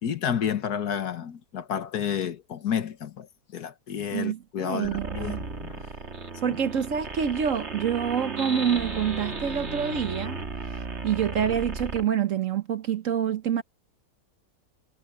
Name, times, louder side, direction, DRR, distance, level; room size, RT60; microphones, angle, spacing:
voice 1, 0.0-3.3 3.5-5.8 6.5-6.6, left 8 dB, 70° left, 1.7 m, -30 dB
voice 2, 4.1-5.4 6.4-10.4 11.0-13.6, right 8 dB, 55° right, 1.1 m, -27 dB
sound 1, 4.8-12.0, right 3 dB, 40° right, 2.3 m, -35 dB
omnidirectional pair, 1.8 m